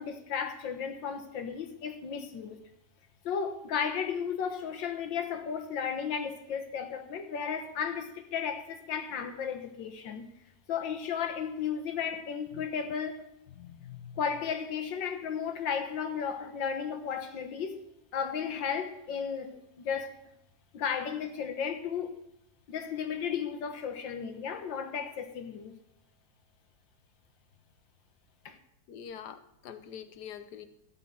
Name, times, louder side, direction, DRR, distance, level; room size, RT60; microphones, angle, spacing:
voice 1, 0.0-2.6 3.3-10.3 10.7-13.3 14.2-17.8 18.1-20.2 20.7-22.1 22.7-25.8 28.5-28.6, left 7 dB, 90° left, 1.9 m, -34 dB
voice 2, 13.6-14.2 28.9-30.7, left 8 dB, 65° left, 1.4 m, -45 dB
13.0 x 5.6 x 8.7 m
omnidirectional pair, 2.0 m